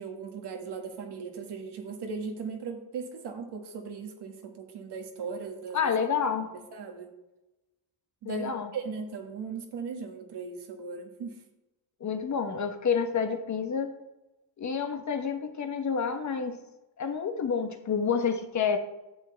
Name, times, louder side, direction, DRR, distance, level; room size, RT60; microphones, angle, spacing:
voice 1, 0.0-5.9 6.7-7.1 8.2-11.4, right 5 dB, 70° right, 3 dB, 1.7 m, -38 dB
voice 2, 5.7-6.5 8.2-8.7 12.0-13.9 14.6-16.6 17.0-18.8, left 6 dB, 40° left, 7 dB, 1.0 m, -29 dB
10.5 x 7.6 x 3.3 m, 1.0 s
cardioid pair, 110°, 42 cm